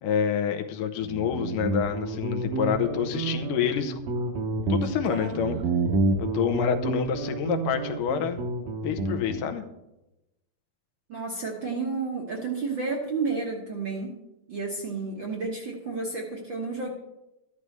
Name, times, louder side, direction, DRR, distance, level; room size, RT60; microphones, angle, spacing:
voice 1, 0.0-3.9 4.7-5.6 6.2-8.4 8.8-9.6, left 8 dB, 80° left, 6 dB, 2.4 m, -27 dB
Guitar, 1.0-9.5, right 2 dB, 75° right, 2.8 m, -29 dB
voice 2, 11.1-14.1 14.5-16.9, right 4 dB, 55° right, -1 dB, 1.3 m, -31 dB
13.5 x 11.5 x 3.2 m, 0.94 s
omnidirectional pair, 3.8 m